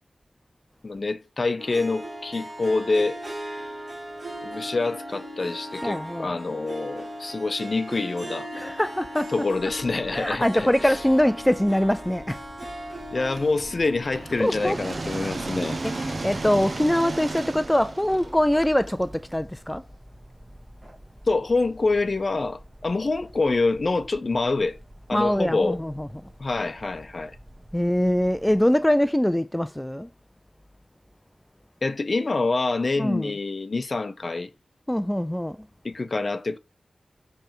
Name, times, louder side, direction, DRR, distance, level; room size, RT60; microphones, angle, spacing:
voice 1, 0.8-3.2 4.4-8.5 9.3-10.7 13.1-15.8 21.3-24.8 25.1-25.8 26.4-27.4 31.8-34.5 35.8-36.6, left 3 dB, 50° left, 0.6 m, -26 dB
Harp, 1.6-18.1, equal, 30° right, 3.3 m, -39 dB
voice 2, 5.8-6.3 8.5-9.3 10.1-12.4 14.4-14.8 15.8-19.8 25.1-26.1 27.7-30.1 33.0-33.3 34.9-35.6, left 1 dB, 10° left, 0.3 m, -23 dB
sound 1, 9.5-28.7, equal, 15° right, 1.4 m, -48 dB
sound 2, 13.4-19.3, right 3 dB, 50° right, 0.7 m, -34 dB
7.5 x 3.3 x 4.5 m
wide cardioid pair, 85°, 0 cm